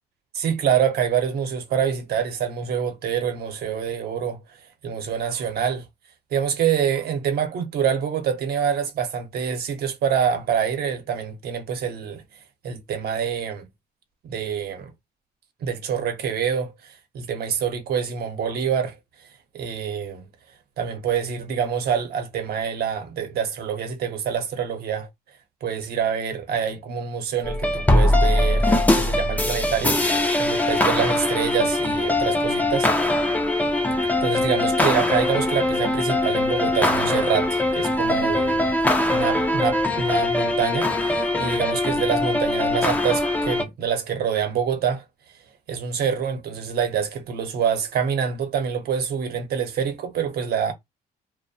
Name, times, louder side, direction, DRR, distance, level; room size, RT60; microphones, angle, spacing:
voice 1, 0.3-4.4 4.8-5.8 6.3-12.2 12.6-13.7 14.2-14.9 15.6-18.9 19.5-20.2 20.8-25.1 25.6-30.0 30.4-32.9 34.0-45.0 45.7-50.7, right 7 dB, 65° right, 0.8 m, -26 dB
sound 1, 27.4-43.6, left 1 dB, 10° left, 0.4 m, -21 dB
2.6 x 2.1 x 2.6 m
cardioid pair, 130°, 17 cm